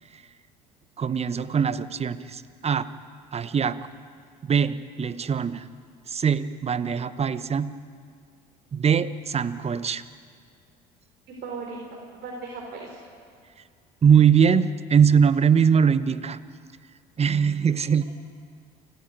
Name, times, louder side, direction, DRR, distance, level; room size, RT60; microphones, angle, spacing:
voice 1, 1.0-2.9 3.3-3.8 4.4-5.7 6.1-7.8 8.7-10.0 14.0-16.4 17.2-18.0, right 7 dB, 30° right, 14 dB, 0.9 m, -22 dB
voice 2, 11.3-11.8 12.1-13.0, right 4 dB, 55° right, -1 dB, 3.8 m, -37 dB
28.5 x 10.5 x 9.3 m, 2.2 s
hypercardioid pair, 70°, 20 cm